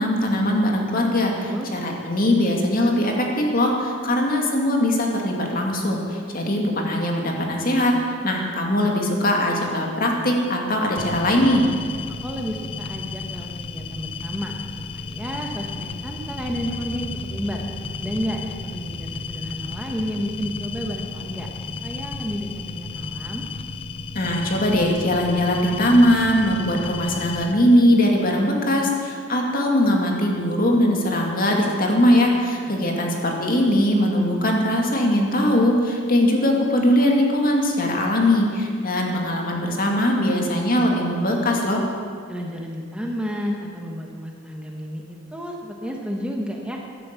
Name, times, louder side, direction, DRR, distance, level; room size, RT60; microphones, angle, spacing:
voice 1, 0.0-7.9 8.2-11.7 24.1-41.8, left 1 dB, 45° left, 0 dB, 2.5 m, -20 dB
sound 1, 11.0-27.5, left 4 dB, 30° left, 0.5 m, -33 dB
voice 2, 12.2-14.5 14.9-17.6 18.0-21.5 21.8-23.4 32.7-33.0 42.3-46.8, equal, 5° right, 0 dB, 1.3 m, -31 dB
sound 2, 15.8-22.8 23.0-23.5 23.8-23.9, equal, 10° left, 2.5 m, -41 dB
14.0 x 11.0 x 8.3 m, 2.1 s
head